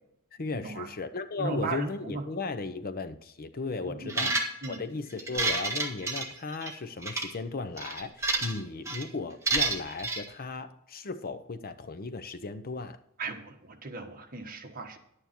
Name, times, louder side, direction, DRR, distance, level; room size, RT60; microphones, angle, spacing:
voice 1, 0.3-13.0, left 3 dB, 45° left, 11 dB, 0.7 m, -36 dB
voice 2, 1.4-2.2 3.9-4.8 13.2-15.0, right 3 dB, 40° right, 3 dB, 1.5 m, -36 dB
sound 1, 4.1-4.8 5.2-6.7 7.0-7.3 7.8-8.6 8.8-9.0 9.5-10.2, right 3 dB, 15° right, 1.7 m, -29 dB
11.5 x 9.3 x 4.4 m, 0.75 s
head